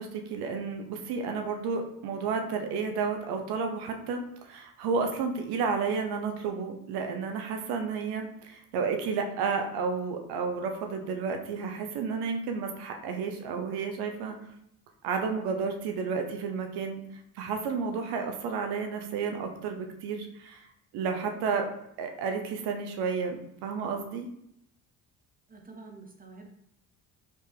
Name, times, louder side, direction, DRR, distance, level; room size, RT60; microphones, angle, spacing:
voice 1, 0.0-14.4 15.0-17.0 17.3-20.7 20.9-21.7 22.0-24.3, right 5 dB, 85° right, 4 dB, 0.8 m, -31 dB
voice 2, 25.5-26.5, right 3 dB, 25° right, 2 dB, 0.6 m, -48 dB
4.2 x 3.2 x 3.4 m, 0.76 s
cardioid pair, 95°, 38 cm